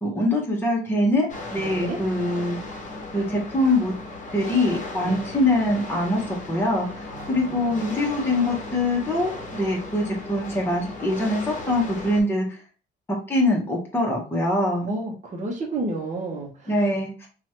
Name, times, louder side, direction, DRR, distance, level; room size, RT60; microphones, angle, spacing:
voice 1, 0.0-2.6 3.1-3.9 4.3-6.2 6.5-12.6 13.3-14.9 16.7-17.3, left 1 dB, 10° left, -3 dB, 0.9 m, -23 dB
sound 1, 1.3-12.2, left 2 dB, 40° left, 0.9 m, -36 dB
voice 2, 1.6-2.0 5.0-5.2 7.1-7.8 14.9-16.5, right 2 dB, 35° right, 0 dB, 0.8 m, -31 dB
2.8 x 2.3 x 2.9 m, 0.37 s
cardioid pair, 90°, 20 cm